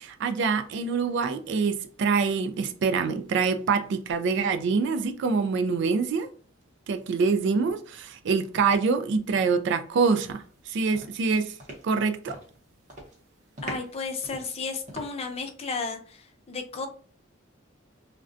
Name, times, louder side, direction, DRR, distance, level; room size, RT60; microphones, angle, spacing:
voice 1, 0.0-6.3 6.9-11.6 11.8-12.4, right 5 dB, 60° right, 0.3 m, -25 dB
sound 1, 10.4-10.6 10.9-12.6 12.9-13.2 13.6-15.4, right 1 dB, 40° right, 0.7 m, -42 dB
voice 2, 13.6-16.9, left 4 dB, 30° left, 0.4 m, -33 dB
2.5 x 2.1 x 2.4 m
head